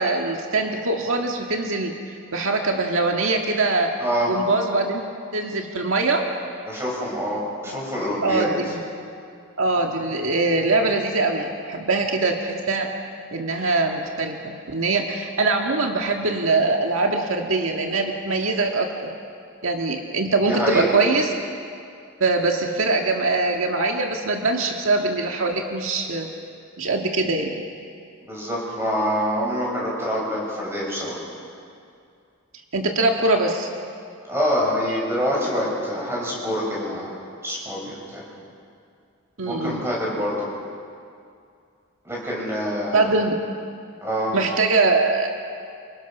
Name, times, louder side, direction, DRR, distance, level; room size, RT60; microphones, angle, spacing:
voice 1, 0.0-1.9 2.3-3.9 4.3-5.0 5.3-6.3 7.7-7.8 8.2-8.8 9.6-12.9 13.3-19.1 19.6-21.3 22.2-26.3 26.8-27.6 32.7-33.7 39.4-39.8 42.9-43.4 44.3-45.3, right 3 dB, 70° right, 2 dB, 1.7 m, -22 dB
voice 2, 4.0-4.3 6.7-8.5 20.3-20.9 28.2-31.2 34.3-37.1 37.4-38.2 39.5-40.5 42.0-43.1 44.0-44.3, equal, 10° right, -5 dB, 7.4 m, -26 dB
28.0 x 25.0 x 6.1 m, 2.4 s
head